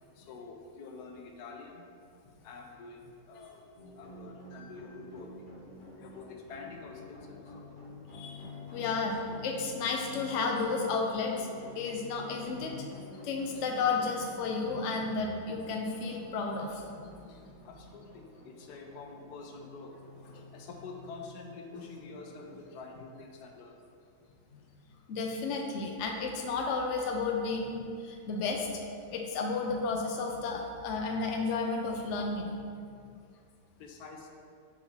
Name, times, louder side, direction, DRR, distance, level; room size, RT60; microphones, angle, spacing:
voice 1, 0.2-1.9 2.4-3.0 3.3-3.6 4.0-5.3 5.9-7.4 17.3-17.4 17.6-19.9 20.3-23.8 33.8-34.3, left 4 dB, 85° left, 2 dB, 1.2 m, -47 dB
sound 1, 3.8-23.0, left 3 dB, 35° left, 1.4 m, -49 dB
voice 2, 8.1-8.5 8.7-11.5 11.8-16.8 25.1-28.7 29.1-32.6, left 4 dB, 60° left, 1 dB, 0.9 m, -32 dB
4.6 x 4.3 x 5.5 m, 2.3 s
omnidirectional pair, 1.7 m